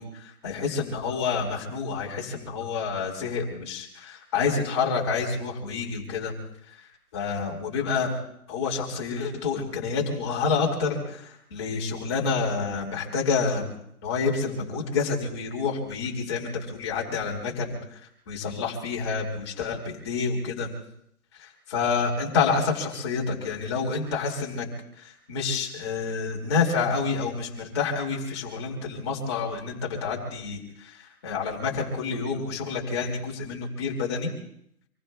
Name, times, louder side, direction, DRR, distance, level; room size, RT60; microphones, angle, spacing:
voice 1, 0.0-6.3 6.7-6.9 7.1-8.1 8.5-13.6 14.0-20.7 21.3-24.7 25.0-34.3, left 5 dB, 20° left, -1 dB, 2.5 m, -28 dB
27.0 x 20.0 x 2.4 m, 0.72 s
hypercardioid pair, 175°, 44 cm